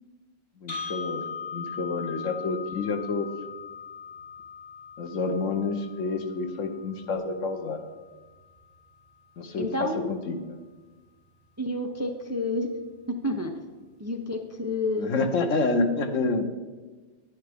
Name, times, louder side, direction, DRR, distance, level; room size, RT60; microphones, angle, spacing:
voice 1, 0.6-1.2 1.5-3.3 5.0-7.8 9.4-10.4 15.0-16.4, left 3 dB, 85° left, 6 dB, 1.3 m, -28 dB
sound 1, 0.7-8.7, left 6 dB, 55° left, 2.1 m, -40 dB
voice 2, 9.6-10.1 11.6-12.7 13.1-13.5 14.0-15.3, left 1 dB, 20° right, 4 dB, 0.4 m, -29 dB
10.5 x 9.9 x 3.5 m, 1.3 s
omnidirectional pair, 1.3 m